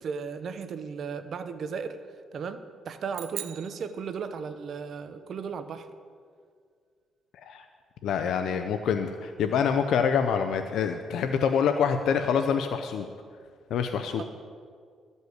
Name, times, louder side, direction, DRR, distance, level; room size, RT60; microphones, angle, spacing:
voice 1, 0.0-2.0 2.3-5.9 14.2-14.3, right 6 dB, 55° right, 10 dB, 0.8 m, -35 dB
sound 1, 3.1-4.8, right 12 dB, 90° right, 0.4 m, -42 dB
voice 2, 8.0-13.1 13.7-14.2, left 7 dB, 75° left, 7 dB, 0.5 m, -26 dB
13.0 x 5.4 x 7.9 m, 2.1 s
cardioid pair, 115°, 0 cm